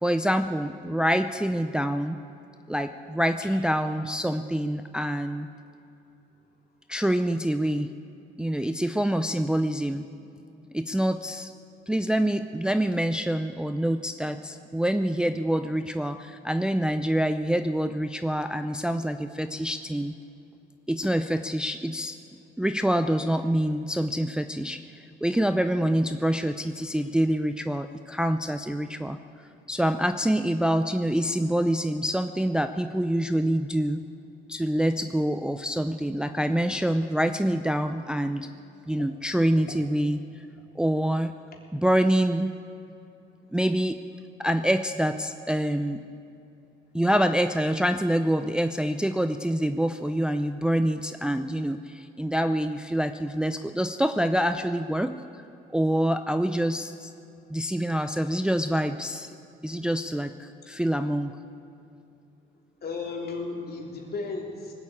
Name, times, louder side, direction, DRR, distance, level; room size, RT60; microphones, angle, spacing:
voice 1, 0.0-2.2 2.7-5.5 6.9-7.9 8.4-10.1 10.7-11.5 11.9-20.1 20.9-22.2 22.6-29.2 29.7-34.0 34.5-38.5 38.9-40.2 40.8-41.3 41.7-42.5 43.5-44.0 44.4-46.0 46.9-55.2 55.7-57.1 57.5-59.3 59.6-61.3, equal, 5° right, 8 dB, 0.5 m, -26 dB
voice 2, 62.8-64.7, left 4 dB, 50° left, 0 dB, 3.4 m, -34 dB
19.5 x 8.3 x 8.8 m, 2.7 s
cardioid pair, 90°, 20 cm